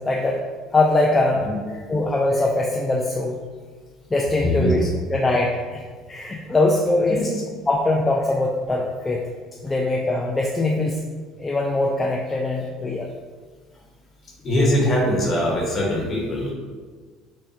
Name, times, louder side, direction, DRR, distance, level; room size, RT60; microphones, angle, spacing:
voice 1, 0.1-0.4 0.7-1.4 1.9-3.4 4.1-5.8 6.1-7.2 7.7-9.2 9.6-11.0 11.4-13.1, left 2 dB, 20° left, -2 dB, 0.4 m, -22 dB
voice 2, 4.4-4.7 7.1-7.3 14.4-16.5, left 1 dB, 40° left, -2 dB, 1.1 m, -22 dB
4.8 x 2.2 x 2.6 m, 1.5 s
hypercardioid pair, 75°, 0 cm